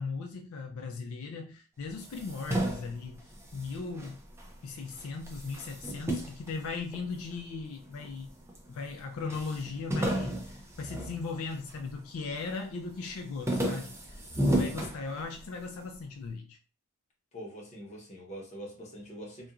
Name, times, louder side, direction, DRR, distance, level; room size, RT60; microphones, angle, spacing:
voice 1, 0.0-4.2 4.6-8.3 8.7-14.2 14.5-16.6, left 4 dB, 70° left, 0.4 m, -38 dB
sound 1, 1.9-4.5 4.9-7.4 8.0-8.7 8.9-9.0 9.3-11.9 12.3-12.7 13.1-15.6, right 1 dB, 10° right, 0.4 m, -33 dB
voice 2, 14.4-14.8 17.3-19.5, equal, 30° left, 0.8 m, -44 dB
2.8 x 2.3 x 2.4 m
head